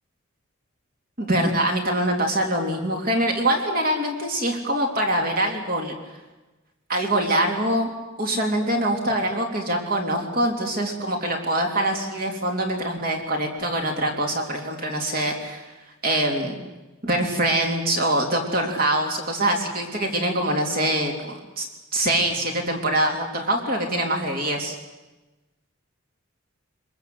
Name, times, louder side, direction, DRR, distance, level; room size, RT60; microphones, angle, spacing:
voice 1, 1.2-5.9 6.9-7.9 8.2-15.7 16.0-16.6 17.0-21.7 21.9-24.8, right 1 dB, 45° right, 2 dB, 3.2 m, -24 dB
26.0 x 21.5 x 7.9 m, 1.1 s
head